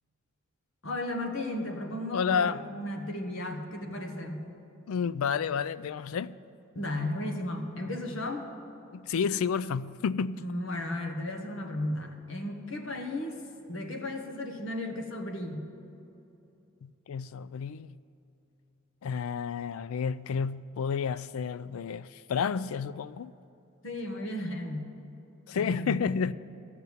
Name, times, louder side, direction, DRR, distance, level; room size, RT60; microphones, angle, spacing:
voice 1, 0.8-4.5 6.7-8.5 10.4-13.4 13.7-15.6 23.8-24.9 25.5-26.0, left 1 dB, 65° left, 1.3 m, -34 dB
voice 2, 2.1-2.6 4.9-6.4 8.9-10.4 16.8-17.9 19.0-23.3 25.5-26.3, left 6 dB, 85° left, 0.4 m, -30 dB
13.5 x 6.7 x 8.4 m
head